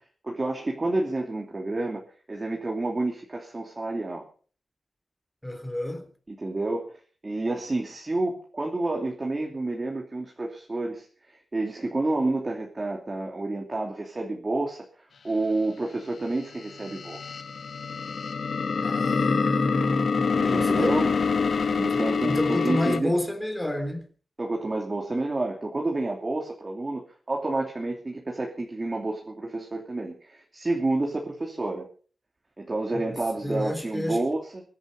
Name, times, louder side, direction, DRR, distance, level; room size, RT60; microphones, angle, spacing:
voice 1, 0.2-2.0 2.3-4.3 6.3-6.9 7.2-14.8 15.2-17.4 20.4-21.2 21.7-23.1 24.4-27.0 27.3-31.9 32.6-34.6, right 2 dB, 25° right, 2.9 m, -29 dB
voice 2, 5.4-6.1 18.7-20.9 21.9-24.0 33.4-34.2, left 1 dB, 10° left, 3.4 m, -30 dB
sound 1, 16.5-23.0, left 5 dB, 60° left, 1.2 m, -26 dB
23.0 x 11.0 x 5.5 m
wide cardioid pair, 160°, 0 cm